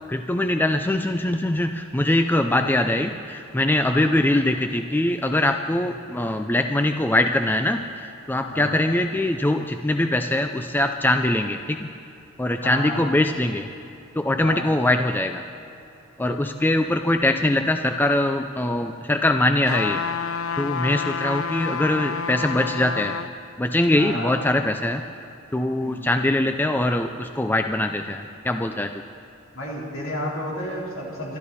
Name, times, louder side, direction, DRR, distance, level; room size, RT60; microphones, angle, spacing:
voice 1, 0.1-11.9 12.4-13.7 14.2-15.4 16.2-20.0 20.6-23.2 23.6-25.0 25.5-29.0, left 1 dB, 10° left, 6 dB, 0.4 m, -22 dB
voice 2, 2.3-2.7 3.8-4.1 8.4-8.8 12.6-13.0 14.4-14.6 23.9-24.3 25.8-26.1 29.5-31.4, left 1 dB, 65° left, -4 dB, 3.9 m, -32 dB
sound 1, 19.7-23.3 23.8-23.9, left 6 dB, 90° left, 0.7 m, -29 dB
23.5 x 12.5 x 4.2 m, 2.8 s
head